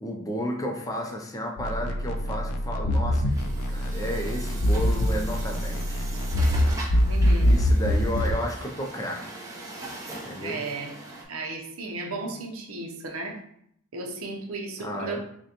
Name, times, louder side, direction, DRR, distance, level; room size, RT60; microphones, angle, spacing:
voice 1, 0.0-3.3 3.7-6.0 7.4-9.4 10.2-10.6 14.8-15.2, equal, 15° left, 1 dB, 0.5 m, -32 dB
sound 1, 1.6-8.4, equal, 80° left, 0.5 m, -24 dB
Truck, 3.2-11.2, right 2 dB, 15° right, 0.7 m, -41 dB
voice 2, 7.1-7.6 10.4-11.0 11.3-13.4 13.9-15.2, right 2 dB, 65° right, 1 dB, 0.7 m, -34 dB
6.2 x 2.2 x 2.9 m, 0.70 s
head